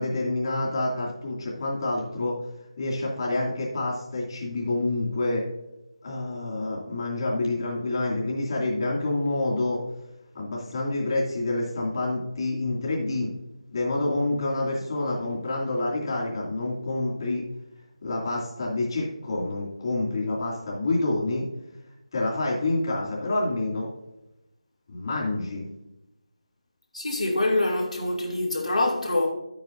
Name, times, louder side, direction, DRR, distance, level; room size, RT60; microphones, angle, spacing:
voice 1, 0.0-2.4 2.8-5.4 6.0-9.8 10.3-13.3 13.7-17.4 18.0-21.5 22.1-23.9 24.9-25.7, left 2 dB, 45° left, 2.6 m, -27 dB
voice 2, 26.9-29.3, left 2 dB, 85° left, 2.4 m, -25 dB
11.5 x 8.9 x 2.6 m
figure-of-eight pair, 165°, 4 cm